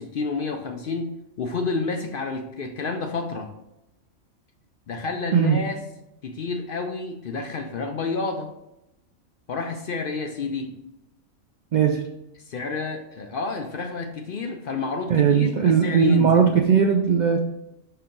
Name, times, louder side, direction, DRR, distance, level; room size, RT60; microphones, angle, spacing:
voice 1, 0.0-3.5 4.9-5.8 6.2-8.5 9.5-10.8 12.5-16.4, left 4 dB, 60° left, 4 dB, 0.6 m, -30 dB
voice 2, 11.7-12.0 15.1-17.4, right 7 dB, 85° right, 4 dB, 0.4 m, -18 dB
5.6 x 4.5 x 3.7 m, 0.87 s
omnidirectional pair, 1.4 m